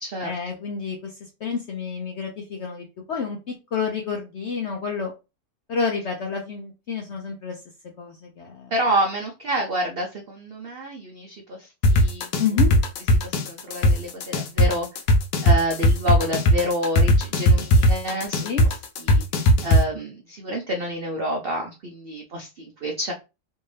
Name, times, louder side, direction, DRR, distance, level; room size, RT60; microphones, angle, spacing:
voice 1, 0.2-5.1 5.7-7.6 8.0-8.7 12.4-12.7 18.4-18.6, left 5 dB, 65° left, 2 dB, 0.7 m, -29 dB
voice 2, 8.7-12.3 13.2-14.9 15.4-18.6 19.0-19.2 19.6-23.1, equal, 70° right, 2 dB, 0.5 m, -28 dB
sound 1, 11.8-19.8, equal, 85° left, 1.3 m, -17 dB
3.3 x 2.7 x 3.2 m, 0.28 s
omnidirectional pair, 1.8 m